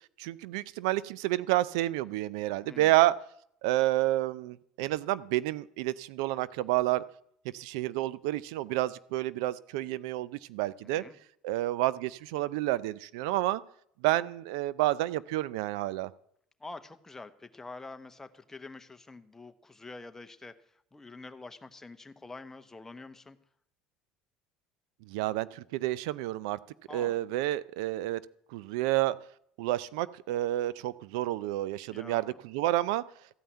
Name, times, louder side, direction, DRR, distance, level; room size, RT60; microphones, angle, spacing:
voice 1, 0.2-3.1 3.6-7.0 7.4-11.0 11.4-13.6 14.0-16.1 25.1-26.6 26.9-28.2 28.5-29.2 29.6-33.0, right 16 dB, 80° right, 19 dB, 0.4 m, -29 dB
voice 2, 10.8-11.2 16.6-23.4 26.9-27.2 31.9-32.4, left 3 dB, 15° left, 10 dB, 1.0 m, -46 dB
14.0 x 5.6 x 8.9 m, 0.68 s
supercardioid pair, 95°, 3 cm